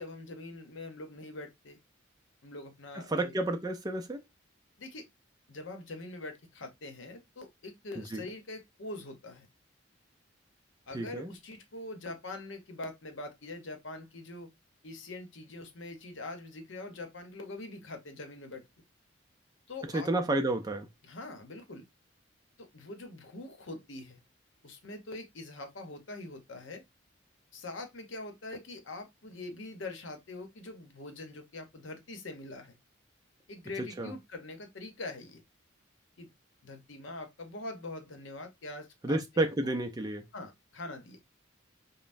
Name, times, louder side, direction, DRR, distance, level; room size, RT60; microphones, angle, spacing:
voice 1, 0.0-1.8 2.4-3.3 4.8-5.1 5.5-9.5 10.9-14.5 14.8-18.6 19.7-20.4 21.0-21.9 22.6-24.2 24.6-26.8 27.5-32.8 33.5-35.4 36.2-36.3 36.6-39.5 40.3-41.2, left 2 dB, 70° left, 0.8 m, -43 dB
voice 2, 3.1-4.2 8.0-8.2 10.9-11.3 19.8-20.9 34.0-34.1 39.0-40.2, right 2 dB, 20° right, 0.4 m, -31 dB
5.3 x 2.1 x 2.5 m
head